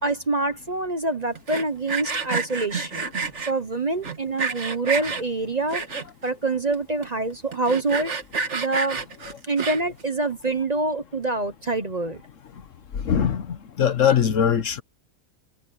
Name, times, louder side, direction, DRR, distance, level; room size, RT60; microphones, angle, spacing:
voice 1, 0.0-3.1 3.5-5.8 6.2-8.1 8.5-9.0 9.4-12.2, right 2 dB, 30° right, 1.0 m, -26 dB
Sawing, 1.4-3.5 4.0-5.2 5.7-6.3 6.7-6.8 7.0-7.1 7.5-10.0, right 4 dB, 50° right, 2.0 m, -29 dB
voice 2, 12.9-14.8, left 8 dB, 60° left, 1.3 m, -21 dB
omnidirectional pair, 1.6 m